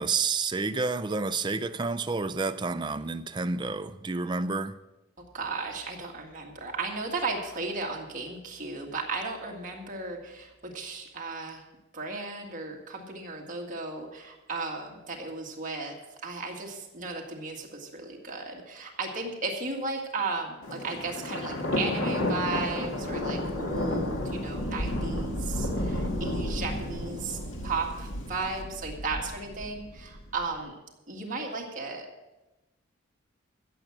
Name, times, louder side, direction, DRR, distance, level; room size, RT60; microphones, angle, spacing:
voice 1, 0.0-4.7, right 4 dB, 20° right, 11 dB, 0.4 m, -29 dB
voice 2, 5.2-11.6 11.9-16.0 16.2-30.8 31.1-32.1, right 3 dB, 40° right, 0 dB, 1.9 m, -35 dB
Thunder, 20.6-30.5, left 1 dB, 70° left, 1.9 m, -32 dB
15.5 x 7.6 x 6.1 m, 1.0 s
head